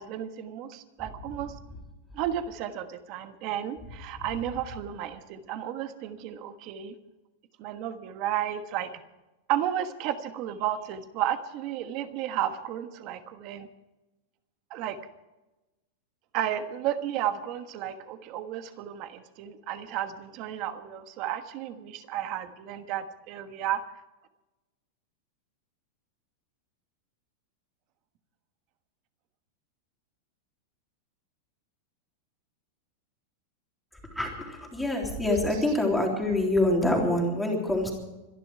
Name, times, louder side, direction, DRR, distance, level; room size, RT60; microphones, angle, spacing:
voice 1, 0.0-1.5 2.1-6.9 7.6-8.9 9.5-13.7 14.7-15.0 16.3-23.8, right 11 dB, 40° right, 9 dB, 1.4 m, -33 dB
voice 2, 34.2-37.9, left 1 dB, 5° left, 0 dB, 3.4 m, -26 dB
25.5 x 11.0 x 4.7 m, 1.0 s
supercardioid pair, 165°, 0 cm